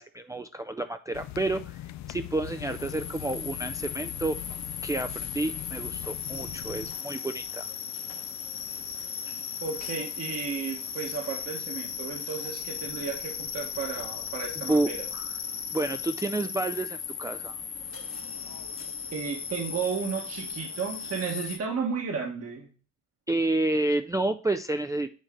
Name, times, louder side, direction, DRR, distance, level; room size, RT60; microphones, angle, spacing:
voice 1, 0.0-4.4 4.8-7.7 14.7-15.3 15.7-17.6 23.3-25.1, right 2 dB, 10° right, 6 dB, 0.4 m, -30 dB
sound 1, 1.1-7.0, left 13 dB, 65° left, 0.5 m, -41 dB
sound 2, 2.4-21.6, left 7 dB, 45° left, 1.2 m, -37 dB
voice 2, 9.6-15.0 19.1-22.7, right 5 dB, 55° right, 0 dB, 1.5 m, -33 dB
9.1 x 3.3 x 3.8 m, 0.38 s
cardioid pair, 90°, 30 cm